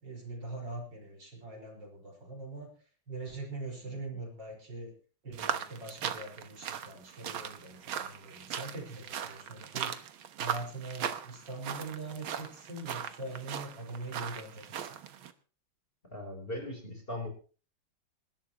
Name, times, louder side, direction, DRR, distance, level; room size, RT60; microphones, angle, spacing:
voice 1, 0.0-2.7 3.1-4.9 5.2-9.9 10.4-14.9, right 2 dB, 60° right, 1 dB, 5.4 m, -42 dB
sound 1, 5.3-15.3, right 9 dB, 80° right, 1.9 m, -39 dB
voice 2, 16.1-17.3, left 1 dB, 25° left, 3 dB, 3.8 m, -39 dB
27.0 x 12.5 x 2.9 m, 0.37 s
omnidirectional pair, 2.2 m